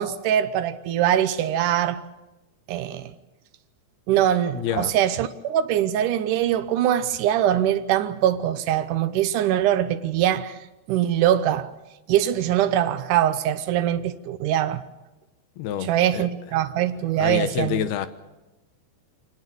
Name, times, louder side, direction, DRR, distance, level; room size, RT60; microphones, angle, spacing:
voice 1, 0.0-2.0 2.7-3.1 4.1-10.6 10.9-11.7 12.1-14.8 15.8-17.9, right 11 dB, 80° right, 1.8 m, -22 dB
voice 2, 4.5-4.9 15.6-16.3 17.2-18.1, left 10 dB, 75° left, 2.7 m, -27 dB
25.5 x 19.0 x 7.9 m
omnidirectional pair, 4.9 m